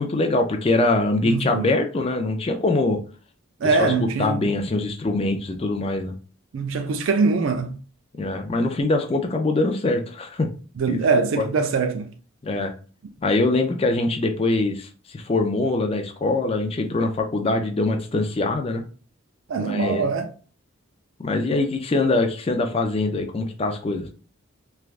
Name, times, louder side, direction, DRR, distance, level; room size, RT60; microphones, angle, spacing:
voice 1, 0.0-3.0 3.8-6.1 8.2-10.5 10.9-11.0 11.4-11.5 12.4-12.7 13.2-14.9 15.1-18.8 19.6-20.0 21.2-24.1, left 2 dB, 25° left, 0.3 m, -23 dB
voice 2, 1.2-1.7 3.6-4.5 6.5-7.8 10.8-12.1 19.5-20.3, right 4 dB, 65° right, 0.3 m, -23 dB
3.2 x 2.3 x 2.4 m
head